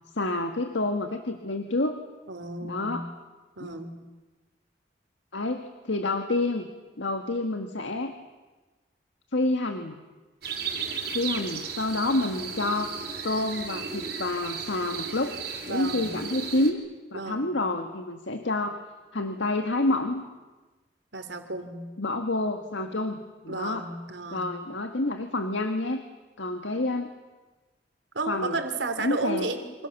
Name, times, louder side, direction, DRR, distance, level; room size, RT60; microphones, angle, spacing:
voice 1, 0.1-2.0 2.7-3.1 3.6-3.8 5.3-6.7 7.0-8.1 9.3-10.0 11.1-13.0 13.2-15.4 15.7-16.8 17.1-18.8 19.1-20.2 22.0-23.9 24.3-26.0 26.4-27.1 28.3-28.6 29.0-29.5, left 2 dB, 90° left, 6 dB, 1.7 m, -28 dB
voice 2, 2.3-3.0 3.6-4.0 15.7-16.1 17.1-17.4 21.1-21.8 23.5-24.5 28.1-29.9, right 3 dB, 80° right, 7 dB, 3.2 m, -33 dB
sound 1, 10.4-16.7, right 5 dB, 60° right, 4.6 m, -35 dB
29.0 x 26.5 x 7.2 m, 1.2 s
head